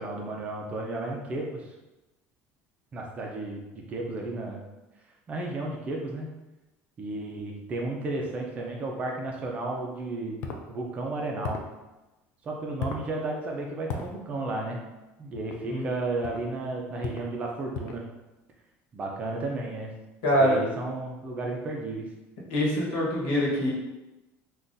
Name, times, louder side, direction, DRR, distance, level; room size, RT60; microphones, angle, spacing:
voice 1, 0.0-1.7 2.9-4.6 5.3-6.3 7.0-10.4 10.7-11.6 12.4-14.8 15.2-18.0 18.9-19.9 20.3-22.1, right 2 dB, 25° right, 0 dB, 0.4 m, -33 dB
sound 1, 10.4-10.6 11.4-11.7 12.8-13.1 13.9-14.1 15.3-15.6 16.2-16.5 17.0-17.3 17.7-18.1, left 4 dB, 45° left, 0.3 m, -36 dB
voice 2, 20.2-20.6 22.5-23.7, equal, 90° left, -4 dB, 1.1 m, -24 dB
3.8 x 2.3 x 2.5 m, 1.0 s
cardioid pair, 180°, 6 cm